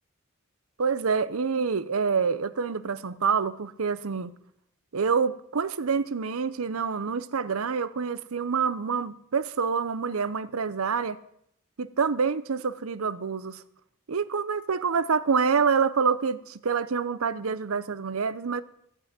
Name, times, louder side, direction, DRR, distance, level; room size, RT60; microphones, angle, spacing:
voice 1, 0.8-4.3 4.9-11.2 11.8-13.6 14.1-18.6, right 5 dB, 90° right, 0.7 m, -27 dB
14.5 x 6.3 x 8.9 m
head